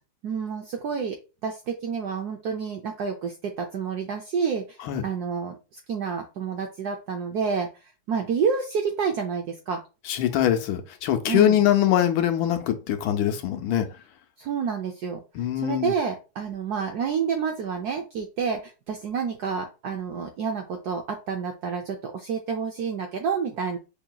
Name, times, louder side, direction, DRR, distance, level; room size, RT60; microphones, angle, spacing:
voice 1, 0.2-4.8 5.0-7.7 8.1-9.8 11.3-11.6 14.4-15.2 15.6-23.8, right 6 dB, 75° right, 3 dB, 0.9 m, -29 dB
voice 2, 10.1-13.9 15.3-15.9, left 11 dB, 85° left, 7 dB, 1.4 m, -23 dB
5.6 x 2.7 x 2.2 m, 0.30 s
omnidirectional pair, 2.1 m